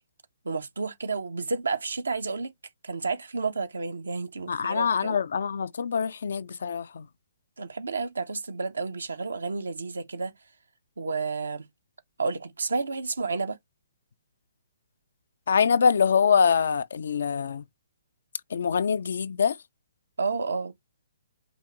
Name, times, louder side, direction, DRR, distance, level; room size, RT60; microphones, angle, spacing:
voice 1, 0.4-2.5 2.8-5.2 7.6-10.3 11.0-11.7 12.2-13.6 20.2-20.7, right 4 dB, 80° right, 0.8 m, -31 dB
voice 2, 4.5-7.1 15.5-17.6 18.5-19.6, left 6 dB, 65° left, 0.4 m, -24 dB
5.3 x 2.6 x 2.9 m
figure-of-eight pair, 130°, 0 cm